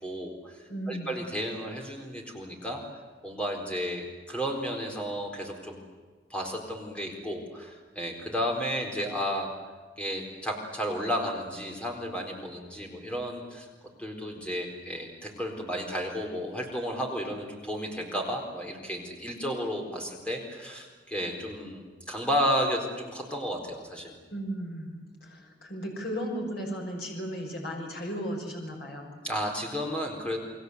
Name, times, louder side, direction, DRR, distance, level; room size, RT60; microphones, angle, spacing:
voice 1, 0.0-2.8 3.2-5.8 6.3-9.5 10.0-13.7 14.0-24.1 29.2-30.4, equal, 5° left, 1 dB, 4.2 m, -32 dB
voice 2, 0.7-1.1 24.3-24.9 25.2-29.1, equal, 60° left, 1 dB, 6.1 m, -35 dB
29.5 x 21.0 x 8.2 m, 1.4 s
head